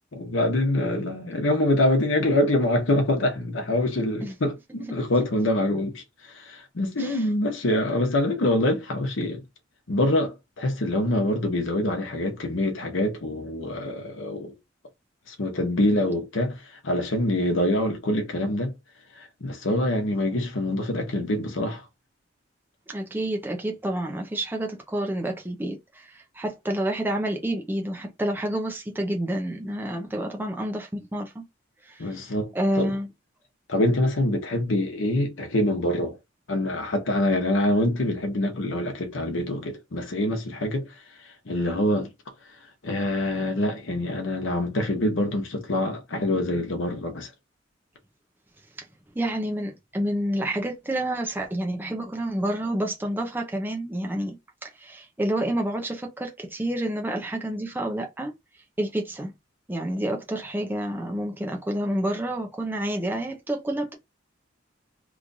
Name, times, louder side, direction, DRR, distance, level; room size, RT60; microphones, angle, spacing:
voice 1, 0.1-9.4 9.9-14.5 15.3-18.7 19.2-21.8 32.0-32.9 33.7-36.2 36.5-40.9 41.5-42.1 42.8-47.3, left 1 dB, 90° left, 0.8 m, -25 dB
voice 2, 22.9-31.4 31.8-32.2 32.5-33.1 49.2-54.4 54.6-58.3 58.8-59.3 59.7-63.9, right 1 dB, 10° right, 0.6 m, -29 dB
3.1 x 2.4 x 3.9 m
head